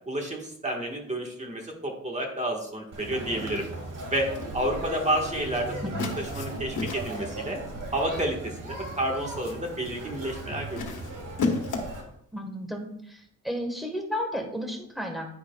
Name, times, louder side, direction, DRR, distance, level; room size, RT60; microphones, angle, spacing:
voice 1, 0.1-3.7 4.1-5.7 6.2-7.6 7.9-8.4 8.6-10.9, right 1 dB, 20° right, 0 dB, 1.5 m, -30 dB
Conversation, 2.9-12.0, right 2 dB, 80° right, 2.1 m, -37 dB
sound 1, 4.2-4.6 6.0-7.3 8.4-8.7 9.1-9.7 10.8-12.1, left 4 dB, 70° left, 1.5 m, -33 dB
voice 2, 12.3-15.3, equal, ahead, 2 dB, 1.4 m, -33 dB
10.5 x 9.9 x 2.4 m, 0.71 s
wide cardioid pair, 155°, 32 cm